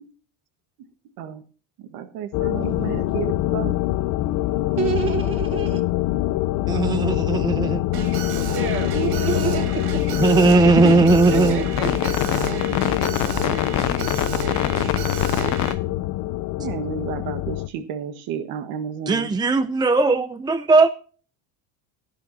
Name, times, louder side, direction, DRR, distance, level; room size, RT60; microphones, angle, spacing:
voice 1, 1.8-3.7 10.8-10.9 16.6-19.3, right 8 dB, 65° right, 7 dB, 1.7 m, -31 dB
sound 1, 2.3-17.7, left 16 dB, 50° left, 0.8 m, -24 dB
voice 2, 2.5-2.9 4.8-5.8 8.5-10.2 11.3-12.4, right 6 dB, 35° right, 5 dB, 4.2 m, -28 dB
voice 3, 6.7-7.8 10.2-11.6 19.1-20.9, right 4 dB, 10° right, 11 dB, 0.5 m, -18 dB
Alarm, 7.9-15.7, right 5 dB, 85° right, 6.8 m, -31 dB
18.0 x 11.0 x 2.8 m, 0.39 s
cardioid pair, 135°, 39 cm